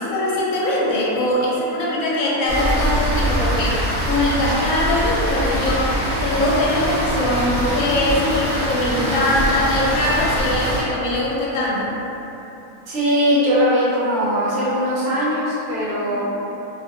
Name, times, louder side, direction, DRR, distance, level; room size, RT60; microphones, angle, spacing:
voice 1, 0.0-5.9 6.2-11.9 16.1-16.2, left 1 dB, 75° left, -5 dB, 1.0 m, -21 dB
Rain, 2.5-10.8, equal, 35° left, 0.8 m, -23 dB
voice 2, 12.9-16.2, equal, 65° right, -9 dB, 1.0 m, -20 dB
2.6 x 2.5 x 2.5 m, 3.0 s
omnidirectional pair, 1.5 m